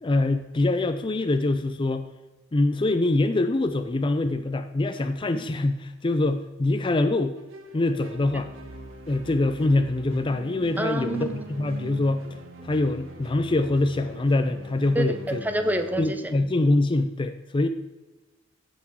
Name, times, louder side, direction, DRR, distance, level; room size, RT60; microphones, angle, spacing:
voice 1, 0.0-2.0 2.5-7.4 7.7-8.5 9.1-12.2 12.6-15.4 16.0-17.7, left 2 dB, 25° left, 8 dB, 0.4 m, -24 dB
sound 1, 7.4-15.9, right 1 dB, 70° right, 1.5 m, -42 dB
voice 2, 10.8-11.5 14.9-15.1 15.4-16.3, right 1 dB, 10° right, 7 dB, 0.7 m, -28 dB
15.5 x 5.9 x 4.6 m, 1.1 s
head